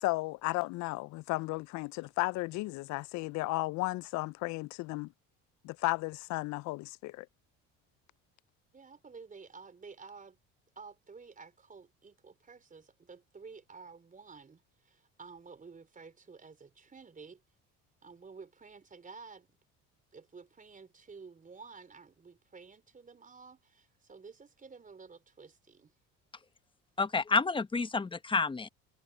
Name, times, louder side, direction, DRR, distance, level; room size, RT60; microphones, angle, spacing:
voice 1, 0.0-5.1 5.6-7.3, left 21 dB, 60° left, 0.4 m, -34 dB
voice 2, 8.7-10.4 10.8-17.4 18.0-19.5 20.1-25.9, right 5 dB, 25° right, 4.6 m, -52 dB
voice 3, 27.0-28.7, left 4 dB, 15° left, 1.0 m, -29 dB
supercardioid pair, 95°, 32 cm